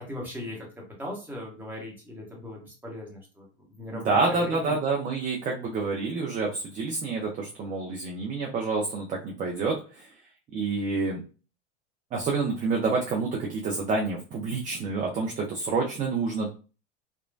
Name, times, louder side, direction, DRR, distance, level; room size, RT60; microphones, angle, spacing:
voice 1, 0.0-4.8, left 1 dB, 5° right, -2 dB, 1.1 m, -39 dB
voice 2, 3.9-10.1 10.5-11.2 12.1-16.5, right 4 dB, 25° right, 0 dB, 0.5 m, -28 dB
2.9 x 2.1 x 2.5 m, 0.34 s
hypercardioid pair, 100°, 34 cm